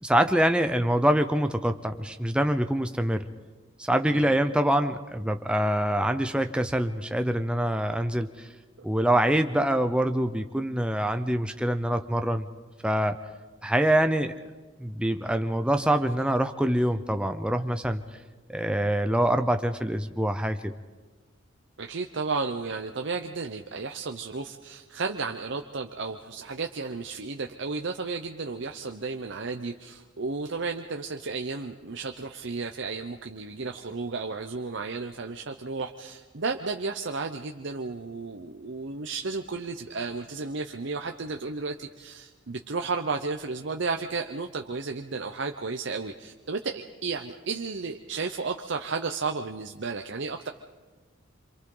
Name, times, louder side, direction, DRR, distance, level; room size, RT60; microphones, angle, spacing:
voice 1, 0.0-3.3 3.8-8.5 8.8-12.5 12.8-13.2 13.6-14.3 14.8-18.0 18.5-20.7, right 1 dB, 5° right, 7 dB, 0.6 m, -25 dB
voice 2, 21.8-50.5, right 4 dB, 60° right, 4 dB, 0.8 m, -33 dB
27.0 x 27.0 x 3.9 m, 1.3 s
head